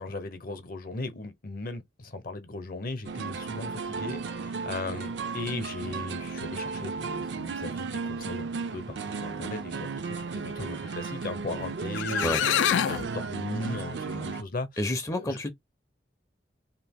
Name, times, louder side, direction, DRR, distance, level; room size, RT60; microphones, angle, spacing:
voice 1, 0.0-12.3 12.9-14.7 15.1-15.4, left 2 dB, 55° left, 0.7 m, -37 dB
sound 1, 3.1-14.4, right 4 dB, 70° right, 0.5 m, -35 dB
sound 2, 11.6-11.7 11.9-13.1, left 10 dB, 85° left, 0.3 m, -25 dB
voice 2, 14.8-15.5, left 1 dB, 15° left, 0.4 m, -29 dB
2.7 x 2.4 x 3.5 m
head